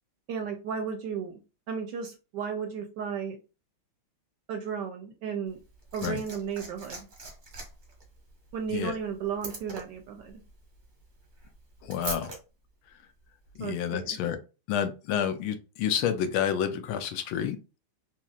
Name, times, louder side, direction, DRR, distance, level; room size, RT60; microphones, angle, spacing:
voice 1, 0.3-1.4 1.7-3.4 4.5-5.6 5.9-7.1 8.5-10.4 13.6-14.2, right 7 dB, 75° right, 5 dB, 1.0 m, -34 dB
Liquid, 5.5-12.4 13.5-13.6, right 2 dB, 40° right, 0.7 m, -43 dB
voice 2, 11.8-12.3 13.6-14.4 14.7-17.6, left 9 dB, 85° left, 9 dB, 1.5 m, -29 dB
4.2 x 3.0 x 2.4 m, 0.31 s
omnidirectional pair, 2.3 m